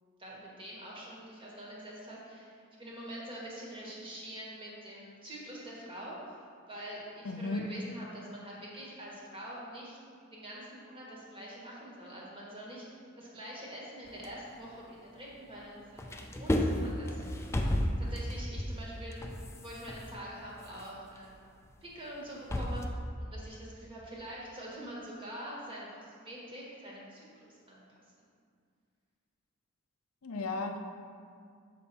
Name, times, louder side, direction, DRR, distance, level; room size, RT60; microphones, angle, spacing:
voice 1, 0.2-6.4 6.7-10.0 10.3-19.3 19.6-21.5 21.8-27.8, equal, 25° right, -5 dB, 1.5 m, -45 dB
voice 2, 7.2-7.6 30.2-30.8, left 3 dB, 80° left, 4 dB, 0.6 m, -34 dB
sound 1, 14.1-15.6 15.9-22.9, equal, 15° left, 0.4 m, -34 dB
6.7 x 5.4 x 4.2 m, 2.1 s
head